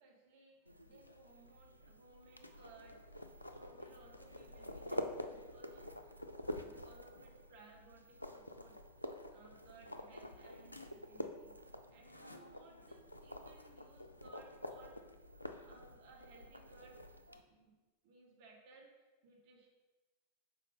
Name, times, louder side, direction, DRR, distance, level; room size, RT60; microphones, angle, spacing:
voice 1, 0.0-6.2 6.4-8.8 9.3-17.7 18.0-19.7, right 3 dB, 50° right, 0 dB, 1.2 m, -62 dB
sound 1, 0.7-17.4, left 1 dB, 85° left, 0.4 m, -48 dB
5.0 x 4.2 x 5.2 m, 1.2 s
figure-of-eight pair, 90°, 0 cm